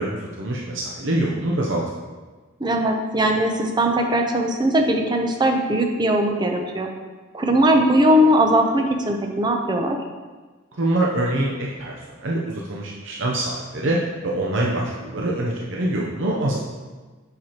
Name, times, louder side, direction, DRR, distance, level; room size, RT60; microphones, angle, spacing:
voice 1, 0.0-1.8 10.7-16.6, right 1 dB, 65° right, -3 dB, 0.7 m, -25 dB
voice 2, 2.6-6.9 7.3-10.0, right 1 dB, 20° right, 2 dB, 0.7 m, -19 dB
7.6 x 5.9 x 3.0 m, 1.3 s
head